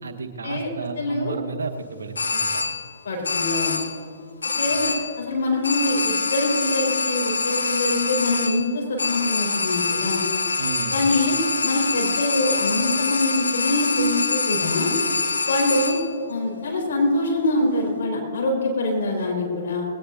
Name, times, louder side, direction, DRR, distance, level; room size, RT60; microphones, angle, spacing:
voice 1, 0.0-2.6 4.7-4.8 10.6-11.1, right 5 dB, 75° right, 6 dB, 1.0 m, -33 dB
voice 2, 1.0-1.4 3.0-3.8 4.6-10.2 10.9-11.3 11.6-14.9 15.5-16.0 16.3-19.9, left 2 dB, 60° left, 1 dB, 4.3 m, -24 dB
sound 1, 2.2-3.0 3.2-4.1 4.4-5.3 5.6-16.2, left 4 dB, 80° left, 1.2 m, -25 dB
20.5 x 18.0 x 2.6 m, 2.4 s
figure-of-eight pair, 120°, 0 cm